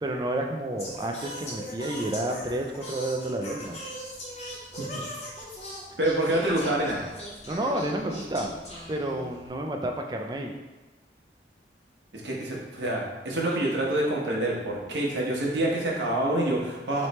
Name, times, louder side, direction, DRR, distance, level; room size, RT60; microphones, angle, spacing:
voice 1, 0.0-3.8 7.5-8.5 8.9-10.5, right 1 dB, 25° right, 2 dB, 0.3 m, -30 dB
Singing, 0.8-9.5, equal, 35° left, 0.8 m, -40 dB
voice 2, 6.0-7.0 12.1-17.1, right 1 dB, 85° right, -3 dB, 1.0 m, -27 dB
3.2 x 3.1 x 4.1 m, 1.2 s
head